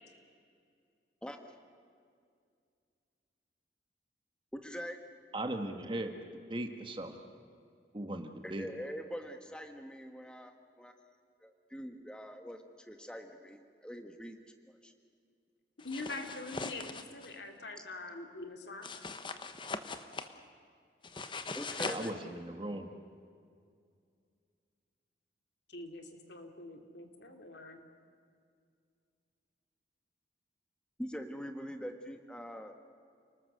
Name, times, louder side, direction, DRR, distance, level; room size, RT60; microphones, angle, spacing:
voice 1, 4.5-5.0 8.4-10.5 10.8-10.9 11.4-14.4 14.7-14.9 17.8-17.9 21.5-22.1 31.0-32.7, equal, 5° left, 5 dB, 1.4 m, -43 dB
voice 2, 5.3-6.1 6.5-7.2 7.9-8.7 21.8-22.9, right 1 dB, 30° right, 6 dB, 1.5 m, -38 dB
voice 3, 15.8-18.9 25.7-27.9, left 2 dB, 80° left, 4 dB, 2.5 m, -44 dB
sound 1, 15.8-17.3 18.8-20.3 21.0-22.1, left 3 dB, 30° left, 1.0 m, -41 dB
29.5 x 19.5 x 6.7 m, 2.3 s
head